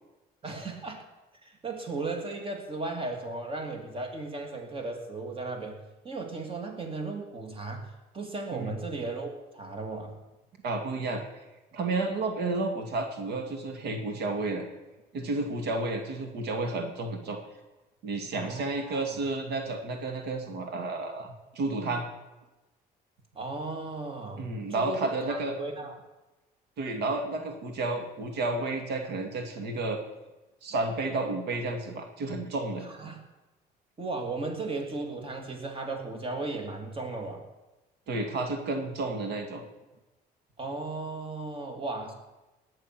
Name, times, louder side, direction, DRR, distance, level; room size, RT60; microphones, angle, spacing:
voice 1, 0.4-1.0 1.4-10.1 18.3-19.0 23.3-25.9 32.8-33.2 34.0-37.4 40.6-42.1, right 3 dB, 30° right, 3 dB, 2.9 m, -36 dB
voice 2, 10.6-11.2 11.7-14.6 15.1-17.4 18.0-22.1 24.4-25.6 26.8-30.0 30.6-32.9 38.1-39.6, right 2 dB, 80° right, 4 dB, 2.4 m, -31 dB
19.0 x 9.5 x 6.1 m, 1.1 s
cardioid pair, 110°, 17 cm